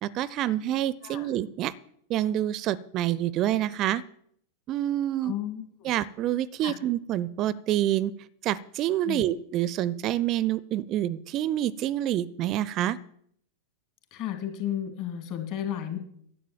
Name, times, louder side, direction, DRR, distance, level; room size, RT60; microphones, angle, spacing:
voice 1, 0.0-1.7 2.1-4.0 4.7-5.3 5.8-8.1 8.4-13.0, right 12 dB, 35° right, 21 dB, 0.4 m, -27 dB
voice 2, 5.2-5.9 6.6-6.7 9.0-9.3 14.1-16.0, left 10 dB, 45° left, 6 dB, 2.5 m, -33 dB
11.5 x 8.3 x 7.3 m, 0.65 s
figure-of-eight pair, 90°, 0 cm